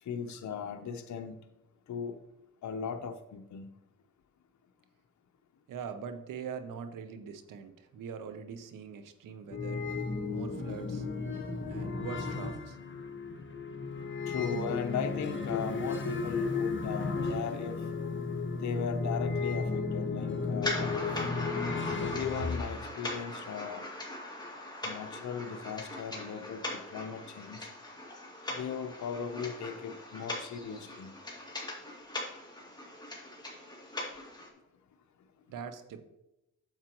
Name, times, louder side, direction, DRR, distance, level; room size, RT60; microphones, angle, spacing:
voice 1, 0.0-1.4 1.9-2.2 2.6-3.7 14.3-17.9 18.5-21.2 22.0-23.8 24.8-27.7 28.5-31.1, left 7 dB, 65° left, 6 dB, 0.8 m, -38 dB
voice 2, 5.7-9.9 10.3-11.1 11.7-12.8 35.5-36.0, right 6 dB, 90° right, 10 dB, 0.8 m, -42 dB
sound 1, 9.5-22.6, left 4 dB, 40° left, 1.3 m, -34 dB
sound 2, 20.6-34.5, left 1 dB, 15° left, 2.2 m, -40 dB
9.0 x 7.4 x 3.0 m, 0.91 s
cardioid pair, 70°, 31 cm